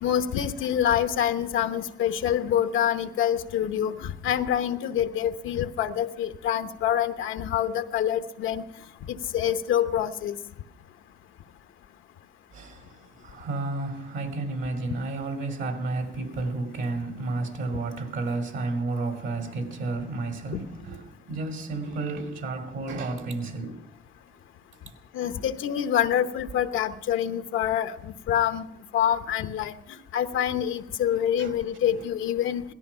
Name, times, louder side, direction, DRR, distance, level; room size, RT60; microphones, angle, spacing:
voice 1, 0.0-8.6 9.1-10.4 25.1-28.7 28.9-29.7 30.1-32.6, left 10 dB, 85° left, 1.0 m, -26 dB
voice 2, 12.5-23.8 31.4-31.5, right 3 dB, 70° right, 2.5 m, -32 dB
17.5 x 13.5 x 5.6 m
cardioid pair, 90°, 20 cm